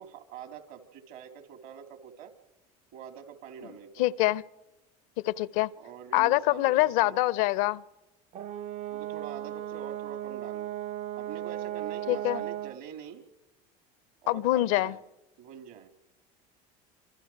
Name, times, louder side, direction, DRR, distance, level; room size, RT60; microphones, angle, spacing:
voice 1, 0.0-2.3 2.9-4.1 5.8-7.2 8.9-10.8 11.2-13.2 14.2-15.0 15.4-15.9, right 8 dB, 70° right, 3.6 m, -45 dB
voice 2, 4.0-4.4 5.2-5.7 6.1-7.8 12.1-12.4 14.3-15.0, left 17 dB, 70° left, 0.8 m, -25 dB
Brass instrument, 8.3-12.8, right 11 dB, 40° right, 0.6 m, -36 dB
26.5 x 25.0 x 4.7 m
hypercardioid pair, 85°, 19 cm